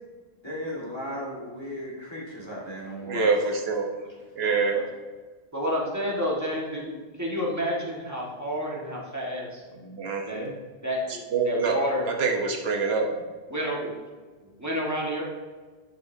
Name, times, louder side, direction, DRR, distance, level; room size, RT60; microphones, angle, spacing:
voice 1, 0.4-3.3, equal, 25° left, -4 dB, 1.7 m, -36 dB
voice 2, 3.1-3.9 4.4-4.8 9.8-10.5 11.3-11.8 12.1-13.2, right 4 dB, 75° right, 2 dB, 1.1 m, -25 dB
voice 3, 5.5-9.6 10.3-10.5 10.8-12.1 13.5-13.9 14.4-15.2, equal, 15° right, -4 dB, 1.5 m, -30 dB
10.5 x 5.5 x 2.7 m, 1.4 s
omnidirectional pair, 1.1 m